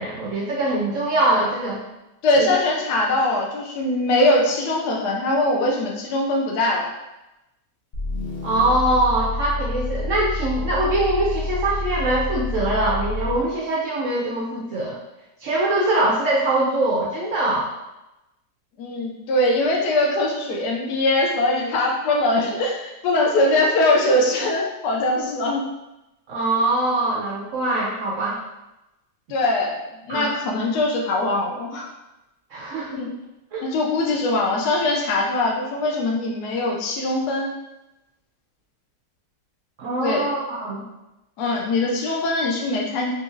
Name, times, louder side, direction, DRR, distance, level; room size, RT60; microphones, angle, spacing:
voice 1, 0.0-1.8 2.4-2.6 8.4-15.0 15.4-17.7 26.3-28.4 30.1-30.3 32.5-33.0 33.5-33.6 39.8-40.8, right 2 dB, 75° right, -4 dB, 0.7 m, -23 dB
voice 2, 2.2-6.9 18.8-25.7 29.3-31.9 32.9-33.1 33.6-37.5 40.0-40.3 41.4-43.1, left 2 dB, 75° left, 0 dB, 1.1 m, -22 dB
sound 1, 7.9-13.5, left 2 dB, 55° left, 0.6 m, -28 dB
4.1 x 2.6 x 2.5 m, 0.96 s
omnidirectional pair, 1.9 m